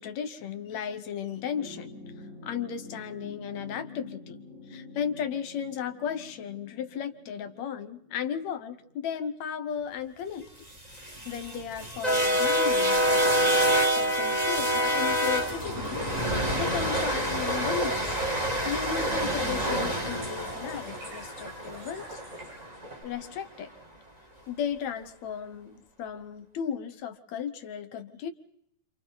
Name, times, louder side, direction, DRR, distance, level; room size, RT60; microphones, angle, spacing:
voice 1, 0.0-1.9 2.4-10.5 10.9-16.0 16.3-18.2 18.7-22.2 23.0-23.7 24.5-28.3, left 8 dB, 65° left, 11 dB, 1.9 m, -35 dB
sound 1, 1.2-9.9 11.1-11.2, left 3 dB, 55° right, 9.3 m, -48 dB
sound 2, 10.8-23.0, equal, 20° right, 1.0 m, -27 dB
sound 3, 15.2-23.0, equal, 90° right, 8.6 m, -44 dB
29.5 x 27.5 x 4.0 m, 0.74 s
omnidirectional pair, 4.2 m